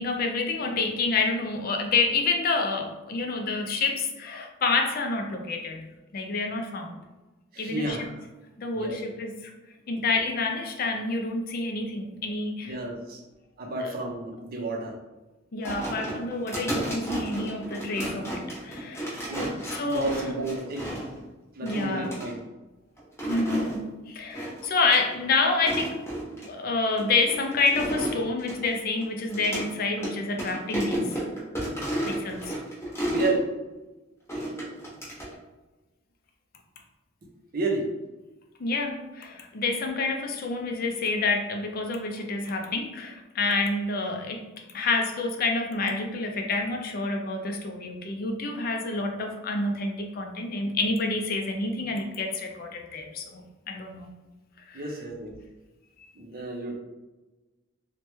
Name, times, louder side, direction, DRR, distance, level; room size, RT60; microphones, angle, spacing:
voice 1, 0.0-5.8 6.1-7.0 7.6-8.0 8.6-9.5 9.9-12.7 15.5-19.2 19.8-20.1 21.6-22.1 23.3-26.0 26.4-31.2 32.0-32.5 38.6-44.5 44.7-54.1 54.7-54.8, left 3 dB, 50° left, 3 dB, 0.4 m, -28 dB
voice 2, 7.5-8.2 8.7-9.0 12.6-13.2 13.6-15.0 19.3-19.5 19.8-20.9 21.5-22.4 33.1-33.4 37.5-37.9 54.7-55.4 56.2-56.8, right 2 dB, 50° right, 0 dB, 0.6 m, -31 dB
sound 1, 15.6-21.2 21.6-22.3 23.0-23.8 24.3-24.6 24.9-25.0 25.5-26.5 27.0-29.7 30.0-30.1 30.4-33.4 34.3-35.3, right 1 dB, 10° left, 0.9 m, -32 dB
3.1 x 2.1 x 3.0 m, 1.1 s
head